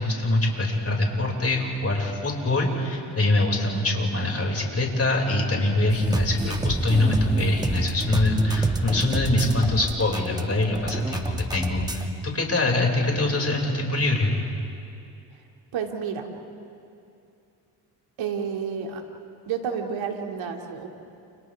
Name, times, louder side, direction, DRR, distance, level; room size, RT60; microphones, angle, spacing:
voice 1, 0.0-14.3, left 2 dB, 30° left, 0 dB, 6.1 m, -24 dB
sound 1, 5.9-12.1, right 1 dB, 10° right, 1.9 m, -29 dB
voice 2, 15.7-16.3 18.2-19.0 19.5-20.9, right 7 dB, 70° right, 2 dB, 2.9 m, -30 dB
30.0 x 29.5 x 3.7 m, 2.6 s
hypercardioid pair, 55°, 49 cm